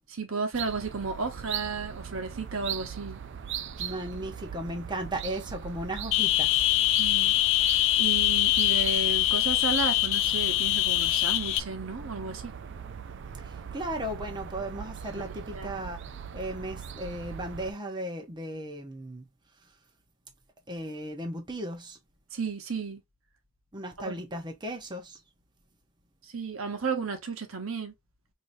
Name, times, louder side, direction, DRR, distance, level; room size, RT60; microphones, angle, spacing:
voice 1, 0.1-3.2 7.0-7.3 7.6-12.5 15.1-15.8 22.3-23.0 24.0-24.2 26.3-27.9, right 4 dB, 75° right, 1.1 m, -33 dB
sound 1, 0.5-17.7, right 8 dB, 60° right, 0.4 m, -40 dB
voice 2, 3.8-6.6 13.4-16.0 16.3-19.3 20.7-22.0 23.7-25.2, right 1 dB, 20° right, 0.8 m, -36 dB
sound 2, 6.1-11.6, left 15 dB, 65° left, 0.4 m, -24 dB
4.7 x 2.8 x 2.6 m
head